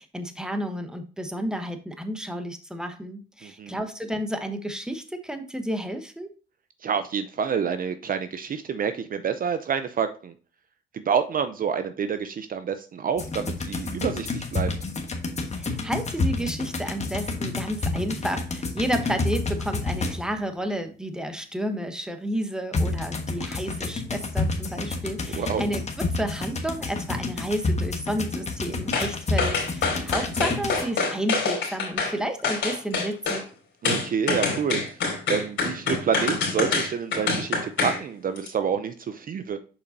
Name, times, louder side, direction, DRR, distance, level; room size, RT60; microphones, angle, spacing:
voice 1, 0.0-6.3 15.5-33.4, right 1 dB, 5° right, 6 dB, 1.1 m, -31 dB
voice 2, 3.4-3.8 6.8-10.3 10.9-14.7 25.3-25.7 29.9-30.3 33.8-35.0 35.3-39.6, right 7 dB, 45° right, 10 dB, 0.6 m, -28 dB
sound 1, 13.2-20.4 22.7-30.8, left 3 dB, 35° left, 1.3 m, -29 dB
sound 2, 28.9-29.1 29.4-32.1 32.4-33.4 33.9-38.0 38.4-38.5, left 4 dB, 70° left, 2.7 m, -26 dB
6.7 x 5.3 x 2.7 m, 0.37 s
cardioid pair, 90°, 20 cm